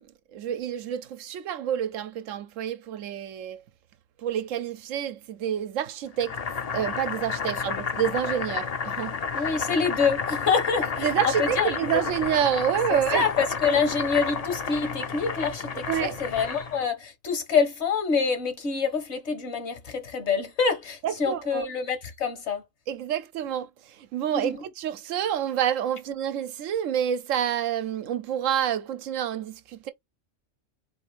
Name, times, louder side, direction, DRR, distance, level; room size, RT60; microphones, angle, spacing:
voice 1, 0.0-3.6 4.2-6.4 6.7-9.5 11.0-13.3 15.9-16.2 21.0-21.7 22.9-29.9, right 9 dB, 90° right, 1.0 m, -28 dB
Boiling, 6.2-16.8, left 5 dB, 45° left, 0.5 m, -31 dB
voice 2, 9.3-12.0 12.9-22.6 24.3-24.6, left 5 dB, 60° left, 1.3 m, -26 dB
4.3 x 2.5 x 4.6 m
omnidirectional pair, 1.3 m